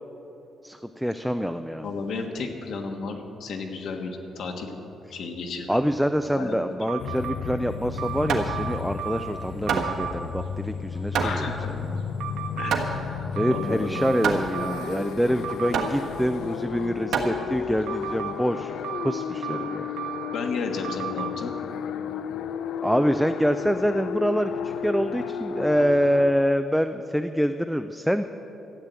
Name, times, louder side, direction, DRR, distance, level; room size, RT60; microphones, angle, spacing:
voice 1, 0.6-1.9 5.7-11.5 11.8-12.0 13.4-18.7 19.0-19.9 22.8-28.3, equal, ahead, 8 dB, 0.3 m, -25 dB
voice 2, 1.8-4.8 5.1-5.8 6.3-6.6 11.2-11.7 12.6-13.9 20.3-21.5, left 4 dB, 60° left, 4 dB, 1.4 m, -33 dB
sound 1, 6.9-7.4 8.0-9.3 9.7-10.1 12.2-12.7 13.4-15.0 15.4-15.9 17.9-18.3 18.8-20.4 20.8-21.3, right 12 dB, 85° right, 0.9 m, -34 dB
sound 2, 7.0-26.3, left 7 dB, 85° left, 0.5 m, -33 dB
Hammer, 7.7-17.9, right 6 dB, 70° right, 1.4 m, -31 dB
13.5 x 9.0 x 8.1 m, 3.0 s
cardioid pair, 170°, 0 cm